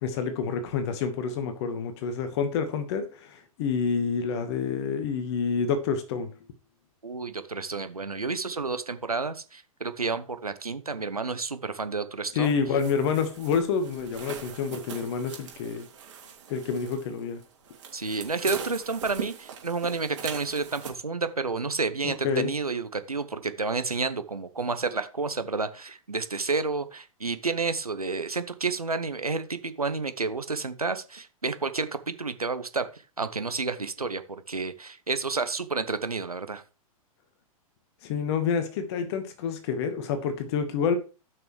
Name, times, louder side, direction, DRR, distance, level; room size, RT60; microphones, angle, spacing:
voice 1, 0.0-6.3 12.3-15.9 16.5-17.4 22.0-22.5 38.0-41.0, left 6 dB, 45° left, 1.3 m, -28 dB
voice 2, 7.0-12.8 17.9-36.6, right 4 dB, 90° right, 0.9 m, -30 dB
sound 1, 12.4-20.9, right 7 dB, 55° right, 2.9 m, -41 dB
14.0 x 6.0 x 3.2 m
figure-of-eight pair, 105°, 18 cm